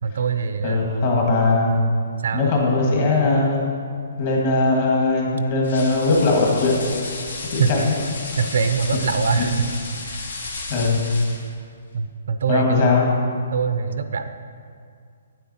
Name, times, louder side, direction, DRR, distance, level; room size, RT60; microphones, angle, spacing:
voice 1, 0.0-0.8 2.2-2.5 7.6-7.7 8.4-9.5 10.1-10.2 11.9-12.9 13.5-14.3, right 6 dB, 65° right, 9 dB, 0.5 m, -23 dB
voice 2, 0.6-1.7 2.3-3.6 4.2-6.7 7.5-7.9 9.4-9.5 10.7-11.0 12.5-13.0, left 3 dB, 35° left, -2 dB, 1.8 m, -19 dB
sound 1, 5.6-11.5, left 3 dB, 75° left, 1.4 m, -33 dB
9.1 x 7.7 x 4.3 m, 2.2 s
hypercardioid pair, 170°, 0 cm